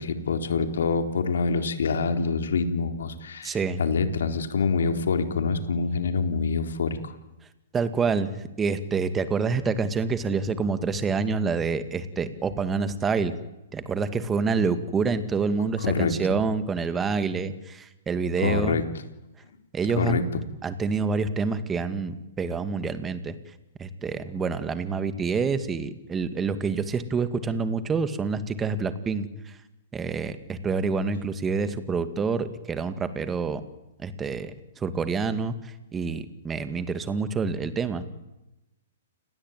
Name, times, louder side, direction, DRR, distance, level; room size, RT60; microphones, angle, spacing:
voice 1, 0.0-7.1 15.8-16.1 18.4-18.8 20.0-20.2, left 4 dB, 85° left, 8 dB, 3.8 m, -26 dB
voice 2, 3.4-3.8 7.7-8.3 8.6-13.4 13.7-18.8 19.7-20.2 20.6-23.4 23.8-29.6 29.9-33.6 34.0-38.0, right 5 dB, 15° right, 11 dB, 2.2 m, -27 dB
29.5 x 21.0 x 9.3 m, 0.96 s
hypercardioid pair, 150°, 0 cm